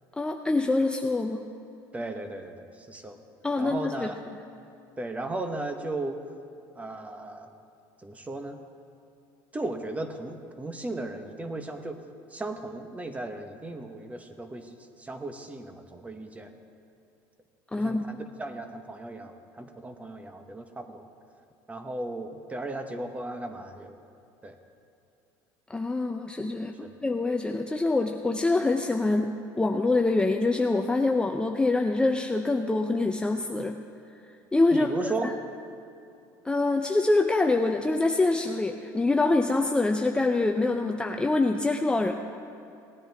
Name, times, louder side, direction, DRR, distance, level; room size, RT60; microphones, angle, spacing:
voice 1, 0.2-1.4 3.4-4.4 17.7-18.0 25.7-26.7 27.0-33.8 34.5-34.9 35.2-35.3 36.4-42.1, left 2 dB, 10° left, 3 dB, 0.5 m, -25 dB
voice 2, 1.9-3.2 3.6-4.2 5.0-6.2 6.8-7.5 8.0-8.6 9.5-12.0 12.3-14.7 15.0-16.5 17.8-21.1 21.7-24.0 24.4-24.6 26.8-26.9 34.7-35.3, right 2 dB, 15° right, 6 dB, 1.0 m, -36 dB
18.0 x 9.9 x 3.5 m, 2.7 s
supercardioid pair, 110°, 10 cm